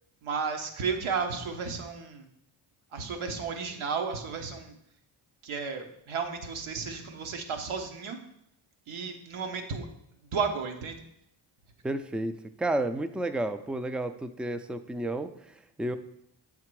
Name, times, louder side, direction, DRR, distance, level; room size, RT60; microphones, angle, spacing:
voice 1, 0.2-2.3 2.9-4.7 5.4-8.2 8.9-9.9 10.3-11.0, right 5 dB, 75° right, 5 dB, 1.1 m, -33 dB
voice 2, 11.8-16.0, right 1 dB, ahead, 10 dB, 0.3 m, -32 dB
7.4 x 3.7 x 4.6 m, 0.76 s
cardioid pair, 60°, 49 cm